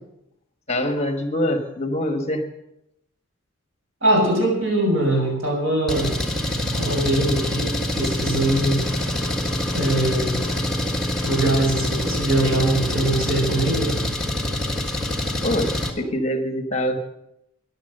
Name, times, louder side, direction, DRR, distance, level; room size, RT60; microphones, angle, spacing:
voice 1, 0.7-2.5 6.7-6.9 15.4-17.0, left 1 dB, 30° left, 6 dB, 1.4 m, -24 dB
voice 2, 4.0-6.2 6.8-8.8 9.7-10.5 11.2-13.9, right 1 dB, 70° right, 0 dB, 6.9 m, -22 dB
Engine, 5.9-15.9, left 1 dB, 5° left, 1.5 m, -25 dB
14.5 x 11.0 x 6.6 m, 0.84 s
head